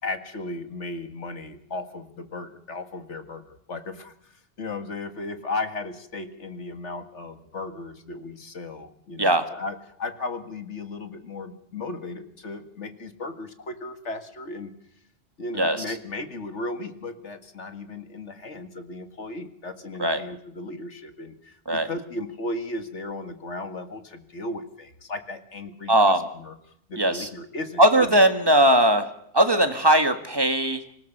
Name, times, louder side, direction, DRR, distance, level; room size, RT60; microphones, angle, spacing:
voice 1, 0.0-4.3 4.6-14.7 15.4-26.5 26.9-28.3, left 2 dB, 85° left, 7 dB, 2.2 m, -35 dB
voice 2, 25.9-26.2 27.0-27.3 27.8-29.1 29.3-31.0, right 1 dB, 20° right, 7 dB, 1.8 m, -19 dB
26.0 x 18.0 x 6.8 m, 0.70 s
omnidirectional pair, 1.2 m